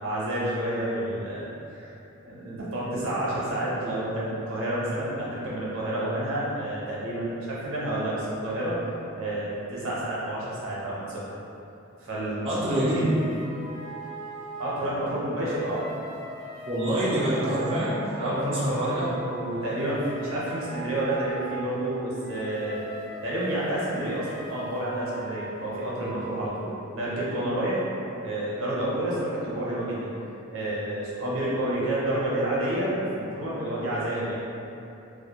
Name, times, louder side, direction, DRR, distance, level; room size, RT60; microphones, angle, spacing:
voice 1, 0.0-1.5 1.7-1.9 2.2-8.8 9.1-11.2 12.0-13.1 14.6-15.8 17.4-17.6 18.2-22.8 23.2-27.8 28.2-30.1 30.5-34.4, right 1 dB, 85° right, -7 dB, 0.7 m, -29 dB
voice 2, 12.4-13.0 16.7-19.0, right 1 dB, 25° right, -9 dB, 0.3 m, -26 dB
sound 1, 12.8-26.5, right 1 dB, 25° left, 0.6 m, -41 dB
2.4 x 2.1 x 2.7 m, 2.8 s
head